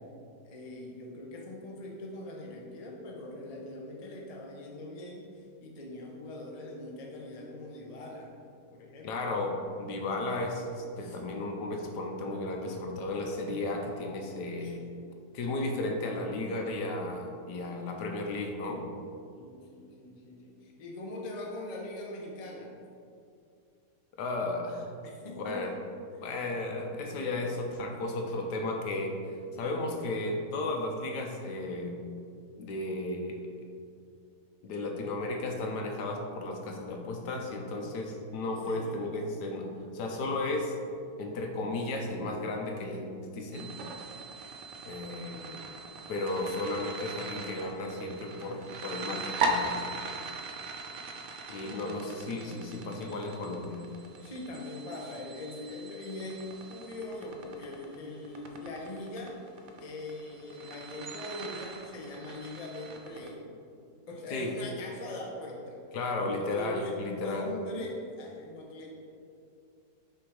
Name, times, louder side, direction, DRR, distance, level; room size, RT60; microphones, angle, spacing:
voice 1, 0.4-8.3 8.7-9.1 11.0-11.2 14.6-14.7 19.3-22.7 25.0-25.6 27.9-28.0 29.6-29.8 38.7-39.0 45.3-45.6 50.1-51.3 54.2-59.4 59.8-63.4 64.1-65.8 66.2-68.9, left 1 dB, 40° left, -2 dB, 0.5 m, -42 dB
voice 2, 9.0-14.8 15.3-18.8 24.2-24.9 25.4-25.7 26.2-32.0 32.6-33.4 34.6-39.7 39.9-40.7 41.2-43.7 44.8-45.5 46.1-49.8 51.5-53.8 64.3-64.5 65.9-67.5, left 2 dB, 75° left, 2 dB, 1.3 m, -34 dB
sound 1, 43.5-63.3, right 3 dB, 70° right, 0.7 m, -39 dB
6.1 x 3.5 x 4.7 m, 2.4 s
omnidirectional pair, 1.9 m